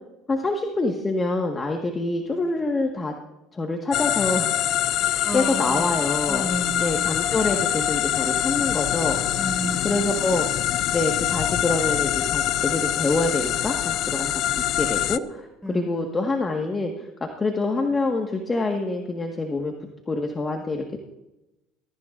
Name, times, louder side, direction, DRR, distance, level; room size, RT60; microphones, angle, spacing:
voice 1, 0.3-3.1 3.5-4.5 5.3-6.5 6.8-9.2 9.8-10.5 10.9-16.9 17.2-19.7 20.1-21.0, left 2 dB, 25° left, 2 dB, 1.7 m, -26 dB
sound 1, 3.9-15.2, left 12 dB, 60° left, 0.6 m, -24 dB
voice 2, 4.9-6.0 6.3-7.5 9.4-10.4 15.6-16.2, equal, 5° left, 3 dB, 5.1 m, -33 dB
21.5 x 14.0 x 2.6 m, 0.95 s
supercardioid pair, 90°, 0 cm